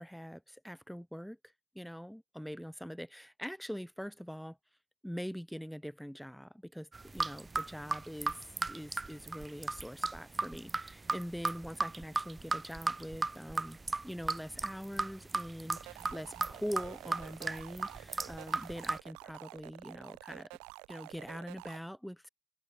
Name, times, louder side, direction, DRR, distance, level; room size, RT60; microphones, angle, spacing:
voice 1, 0.0-1.4 1.7-4.6 5.0-8.3 8.7-13.8 14.0-20.5 20.9-22.3, equal, ahead, 0.8 m, -43 dB
sound 1, 6.9-19.0, right 3 dB, 25° right, 0.4 m, -36 dB
sound 2, 15.8-21.8, right 29 dB, 70° right, 1.1 m, -50 dB
hypercardioid pair, 55°, 0 cm